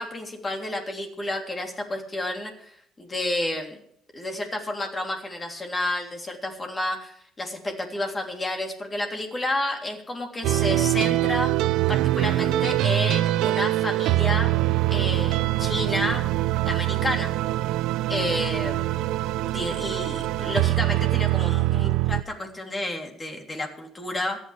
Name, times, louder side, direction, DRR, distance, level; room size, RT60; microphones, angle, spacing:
voice 1, 0.0-3.8 4.1-11.5 11.9-14.5 14.9-16.3 16.6-17.3 18.1-18.9 19.4-24.4, left 1 dB, 20° left, 2 dB, 3.2 m, -30 dB
sound 1, 10.4-22.2, right 16 dB, 80° right, 0.6 m, -23 dB
27.0 x 9.3 x 3.4 m, 0.66 s
cardioid pair, 140°, 0 cm